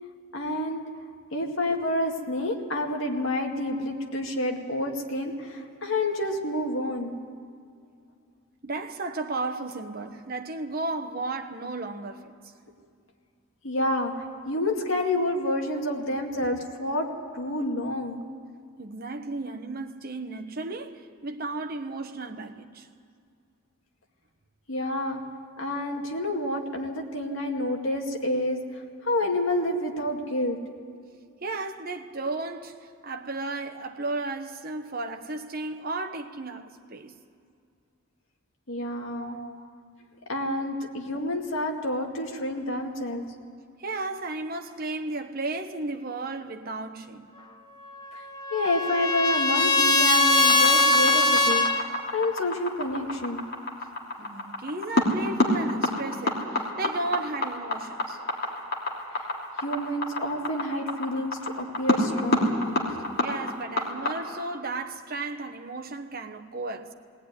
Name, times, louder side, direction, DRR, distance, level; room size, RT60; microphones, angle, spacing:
voice 1, 0.3-0.8 1.3-7.2 13.6-17.1 17.3-18.2 24.7-25.2 25.6-28.6 29.0-30.6 38.7-39.4 40.3-43.2 48.1-48.2 48.5-53.5 59.6-62.9, left 1 dB, 65° left, 2.2 m, -29 dB
voice 2, 8.6-12.3 18.8-22.9 25.6-25.7 31.4-37.1 39.2-39.7 40.8-40.9 43.8-47.3 54.2-58.2 63.2-66.9, right 2 dB, 45° right, 1.2 m, -34 dB
Trumpet, 47.9-51.8, left 2 dB, 20° left, 1.2 m, -21 dB
sound 1, 50.5-64.1, left 2 dB, 50° left, 3.0 m, -27 dB
19.5 x 18.0 x 9.8 m
head